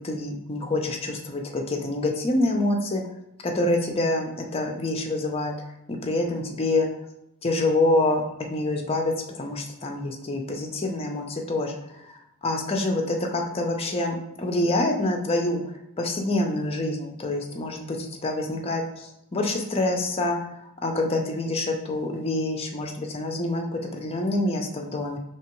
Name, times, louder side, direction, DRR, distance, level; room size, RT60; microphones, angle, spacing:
voice 1, 0.0-3.0 3.4-5.5 5.9-6.9 7.4-8.2 8.5-20.4 20.8-23.6 23.9-25.2, left 2 dB, 25° left, 2 dB, 0.5 m, -26 dB
4.5 x 2.9 x 3.0 m, 0.84 s
head